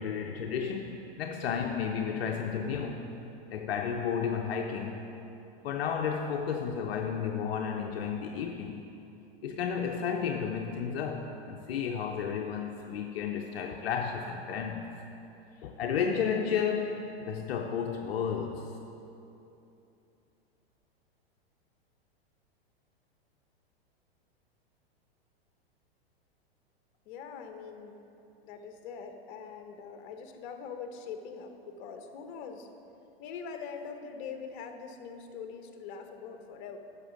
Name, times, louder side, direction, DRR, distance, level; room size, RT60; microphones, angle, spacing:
voice 1, 0.0-3.1 3.5-5.0 5.6-8.8 9.4-14.9 15.6-18.7, left 7 dB, 70° left, 3 dB, 0.7 m, -32 dB
voice 2, 27.1-28.0 28.4-32.7 33.2-36.8, left 6 dB, 50° left, 6 dB, 1.0 m, -43 dB
9.8 x 6.7 x 5.1 m, 2.9 s
hypercardioid pair, 110°, 31 cm